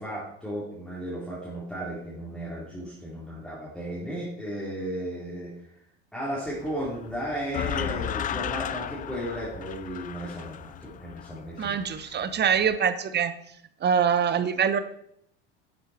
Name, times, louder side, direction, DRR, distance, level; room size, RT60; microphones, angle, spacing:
voice 1, 0.0-5.5 6.1-11.7, right 1 dB, ahead, -8 dB, 3.8 m, -34 dB
sound 1, 6.5-12.8, left 10 dB, 25° left, 0.4 m, -35 dB
voice 2, 11.6-13.3 13.8-14.8, right 7 dB, 30° right, 12 dB, 1.0 m, -24 dB
11.0 x 8.3 x 4.5 m, 0.74 s
hypercardioid pair, 90°, 32 cm